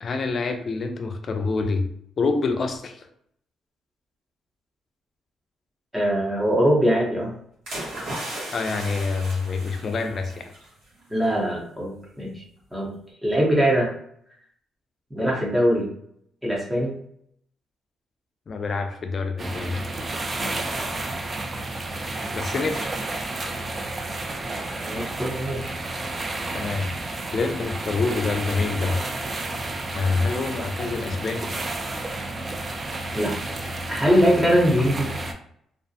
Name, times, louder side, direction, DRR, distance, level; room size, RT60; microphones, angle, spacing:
voice 1, 0.0-1.9 2.2-3.1 8.5-10.5 18.5-19.8 22.3-22.9 26.5-26.9 27.3-29.0 29.9-31.5, left 4 dB, 45° left, 6 dB, 0.4 m, -26 dB
voice 2, 5.9-7.3 11.1-12.4 12.7-12.9 13.2-13.9 15.1-15.9 16.4-17.0 20.4-20.6 24.7-25.7 33.1-33.4 33.9-35.1, equal, 5° right, -3 dB, 0.8 m, -22 dB
sound 1, 7.7-10.7 11.0-11.2, right 1 dB, 80° right, 1.1 m, -35 dB
sound 2, 19.4-35.3, right 2 dB, 30° right, 0.4 m, -31 dB
2.4 x 2.0 x 2.6 m, 0.68 s
cardioid pair, 90°, 0 cm